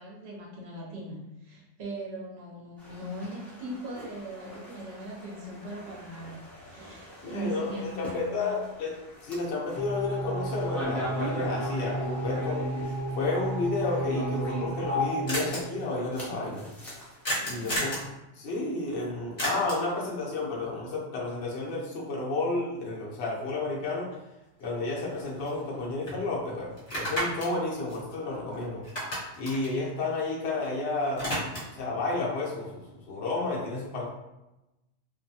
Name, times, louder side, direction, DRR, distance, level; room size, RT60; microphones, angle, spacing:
voice 1, 0.0-8.6 17.4-17.9, right 1 dB, 65° right, -4 dB, 1.0 m, -40 dB
sound 1, 2.8-17.8, equal, ahead, 0.6 m, -41 dB
voice 2, 7.2-9.0 9.2-16.7 17.5-18.0 18.3-24.1 24.6-28.8 29.1-31.4 31.7-34.1, left 3 dB, 70° left, -4 dB, 0.9 m, -31 dB
sound 2, 9.8-16.2, right 1 dB, 20° right, 1.1 m, -33 dB
sound 3, 15.3-15.6 17.2-18.1 19.4-19.9 24.1-24.2 24.6-25.8 26.1-26.2 26.8-28.5 28.8-30.7 30.9-31.8, equal, 40° left, 1.2 m, -33 dB
2.6 x 2.2 x 2.7 m, 0.98 s
omnidirectional pair, 1.2 m